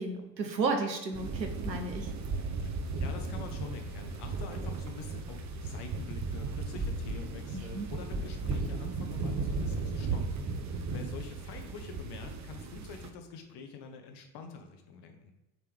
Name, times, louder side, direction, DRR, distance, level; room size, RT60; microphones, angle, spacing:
voice 1, 0.0-2.1 7.5-7.9, right 3 dB, 90° right, 4 dB, 0.9 m, -33 dB
sound 1, 1.1-13.1, right 3 dB, 35° right, 0.8 m, -35 dB
voice 2, 2.6-10.4 10.7-15.3, left 5 dB, 50° left, 6 dB, 1.2 m, -46 dB
9.1 x 3.4 x 3.5 m, 1.0 s
figure-of-eight pair, 60°, 49 cm